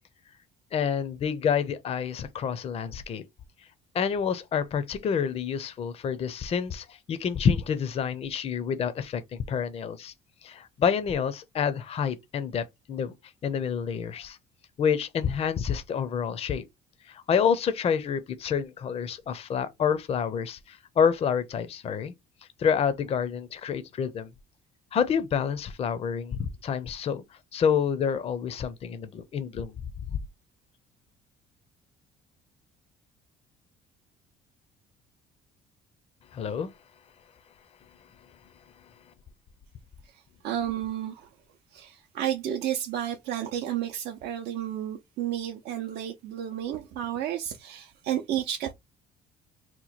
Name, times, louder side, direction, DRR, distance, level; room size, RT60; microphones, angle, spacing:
voice 1, 0.7-3.2 3.9-10.1 10.4-13.1 13.4-14.4 14.8-16.6 17.1-22.1 22.6-24.3 24.9-27.2 27.5-29.7 30.1-30.2 36.3-36.7, left 7 dB, 35° left, 0.4 m, -28 dB
voice 2, 40.0-41.3 41.7-48.7, right 11 dB, 80° right, 0.5 m, -32 dB
2.9 x 2.2 x 4.1 m
cardioid pair, 110°, 17 cm